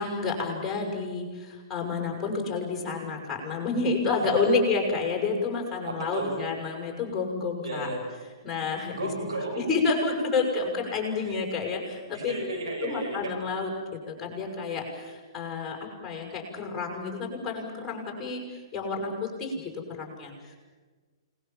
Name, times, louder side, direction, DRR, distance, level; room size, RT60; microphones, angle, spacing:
voice 1, 0.0-7.9 8.4-9.1 9.5-12.3 12.8-15.8 16.0-19.6 19.9-20.6, left 4 dB, 15° left, 1 dB, 6.7 m, -29 dB
voice 2, 4.1-4.5 5.9-6.3 7.6-8.0 8.9-9.7 11.2-11.3 12.1-13.3, right 2 dB, 80° right, 1 dB, 7.2 m, -33 dB
29.5 x 20.5 x 7.4 m, 1.4 s
hypercardioid pair, 125°, 3 cm